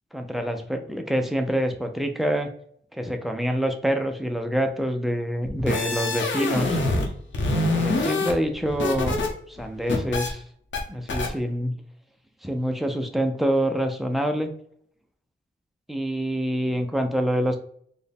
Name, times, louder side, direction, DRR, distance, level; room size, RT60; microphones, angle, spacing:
voice 1, 0.1-2.5 2.9-6.8 7.7-9.2 9.5-10.4 10.9-11.7 12.4-14.5 15.9-17.6, equal, ahead, 4 dB, 0.4 m, -26 dB
sound 1, 5.4-7.1 7.3-9.3 9.6-10.3 10.7-10.8 11.1-11.3, left 2 dB, 80° left, 0.8 m, -25 dB
4.2 x 2.1 x 3.4 m, 0.63 s
wide cardioid pair, 140°, 19 cm